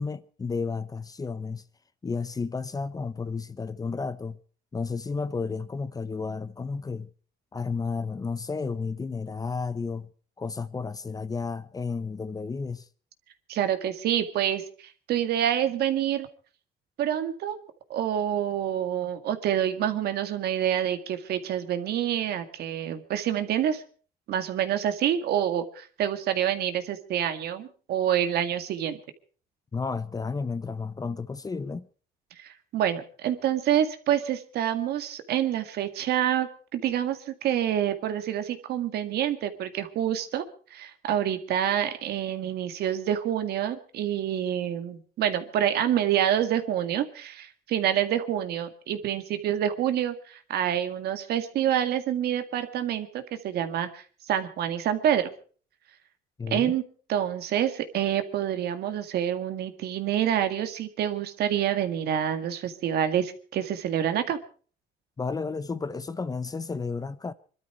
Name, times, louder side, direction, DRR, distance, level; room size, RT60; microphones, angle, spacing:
voice 1, 0.0-1.6 2.0-4.4 4.7-7.1 7.5-10.1 10.4-12.8 29.7-31.9 56.4-56.7 65.2-67.3, left 4 dB, 20° left, 0.8 m, -32 dB
voice 2, 13.5-16.3 17.0-17.6 17.9-23.8 24.3-29.0 32.4-40.4 40.7-55.3 56.5-56.8 57.1-64.4, right 10 dB, 70° right, 2.0 m, -27 dB
24.0 x 12.5 x 4.7 m
cardioid pair, 110°, 17 cm